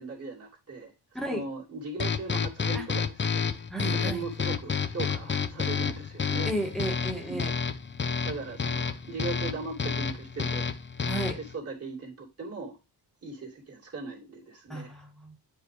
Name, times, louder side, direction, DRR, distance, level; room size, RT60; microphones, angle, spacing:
voice 1, 0.0-6.5 7.3-7.5 8.2-10.7 11.0-12.8 13.2-14.9, right 3 dB, 35° right, 2.7 m, -39 dB
sound 1, 2.0-11.5, left 6 dB, 30° left, 0.7 m, -30 dB
voice 2, 3.7-4.2 6.5-7.5 11.1-11.4 14.7-15.4, right 1 dB, ahead, 1.6 m, -33 dB
9.2 x 4.9 x 3.3 m
wide cardioid pair, 140°, 41 cm